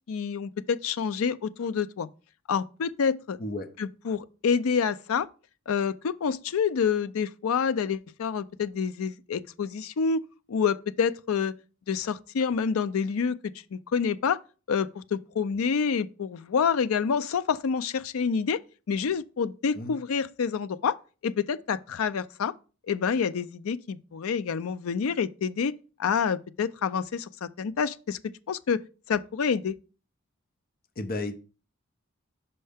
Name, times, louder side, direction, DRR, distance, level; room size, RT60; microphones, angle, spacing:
voice 1, 0.1-2.1 2.5-3.4 3.8-5.3 5.7-10.2 10.5-11.5 11.9-13.4 13.7-14.4 14.7-18.6 18.9-21.0 21.2-22.5 22.9-25.7 26.0-28.2 28.5-28.8 29.1-29.8, left 6 dB, 80° left, 0.4 m, -27 dB
voice 2, 3.4-3.7 19.8-19.9 31.0-31.3, left 2 dB, 45° left, 0.7 m, -32 dB
5.5 x 5.5 x 3.4 m
head